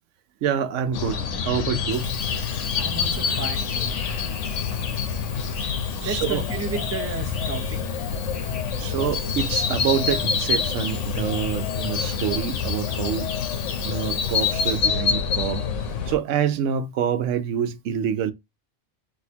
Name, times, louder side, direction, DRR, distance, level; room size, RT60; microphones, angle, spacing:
voice 1, 0.4-2.1 6.0-6.4 8.8-13.3 13.8-15.6 16.1-18.3, right 9 dB, 85° right, 0.9 m, -26 dB
sound 1, 0.9-16.2, left 6 dB, 85° left, 1.1 m, -26 dB
Sink (filling or washing), 1.8-15.6 16.3-16.4, left 7 dB, 60° left, 0.4 m, -42 dB
voice 2, 2.7-4.0 6.0-7.9, right 6 dB, 20° right, 0.4 m, -33 dB
6.1 x 2.7 x 2.7 m
omnidirectional pair, 1.2 m